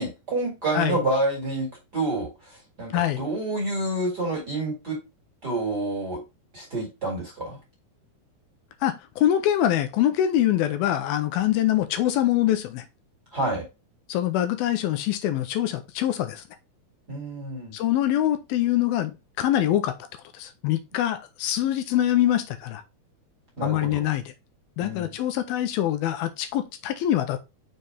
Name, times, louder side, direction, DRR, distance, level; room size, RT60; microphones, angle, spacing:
voice 1, 0.0-1.7 1.9-2.3 2.8-5.0 5.4-6.2 6.5-7.6 13.3-13.6 17.1-17.7 23.6-24.0 24.8-25.1, right 2 dB, 35° right, 2.0 m, -28 dB
voice 2, 2.9-3.2 8.8-12.9 14.1-16.4 17.7-19.9 20.3-22.8 23.6-24.3 24.8-27.4, left 12 dB, 85° left, 2.5 m, -24 dB
6.3 x 4.5 x 3.3 m
omnidirectional pair, 4.4 m